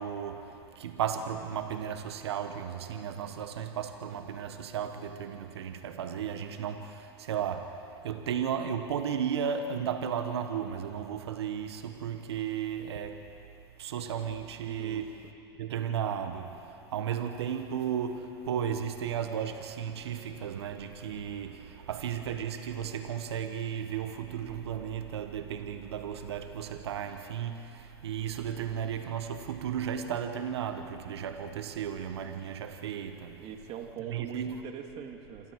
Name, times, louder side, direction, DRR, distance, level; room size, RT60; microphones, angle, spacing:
voice 1, 0.0-7.8 8.0-13.2 13.8-15.2 15.6-33.4 34.1-34.6, right 8 dB, 80° right, 1.5 m, -34 dB
voice 2, 14.7-15.0 33.4-35.5, right 9 dB, 50° right, 2.6 m, -42 dB
27.5 x 26.5 x 4.9 m
hypercardioid pair, 95°, 14 cm